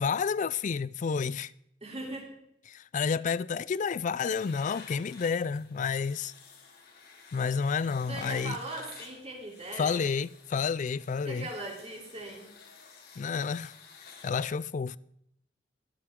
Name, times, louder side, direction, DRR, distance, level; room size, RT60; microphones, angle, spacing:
voice 1, 0.0-1.5 2.7-6.3 7.3-8.6 9.8-11.5 13.2-13.7 14.2-15.0, left 5 dB, 45° left, 0.3 m, -30 dB
voice 2, 1.8-2.3 8.1-10.0 11.2-12.5, right 2 dB, 35° right, 3.2 m, -39 dB
sound 1, 4.2-14.4, left 5 dB, 60° left, 2.3 m, -52 dB
22.5 x 7.6 x 3.7 m
head